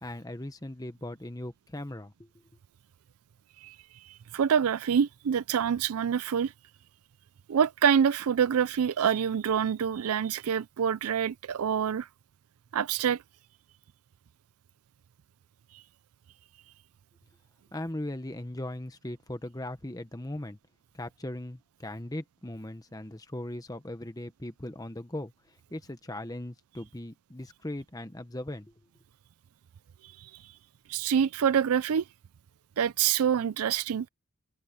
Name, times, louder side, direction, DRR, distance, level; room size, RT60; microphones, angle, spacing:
voice 1, 0.0-2.3 17.7-20.6 20.9-28.7, left 1 dB, 15° left, 1.0 m, -39 dB
voice 2, 4.1-6.5 7.5-12.1 12.7-13.2 30.2-30.3 30.9-32.0 32.8-34.1, right 8 dB, 80° right, 0.4 m, -26 dB
head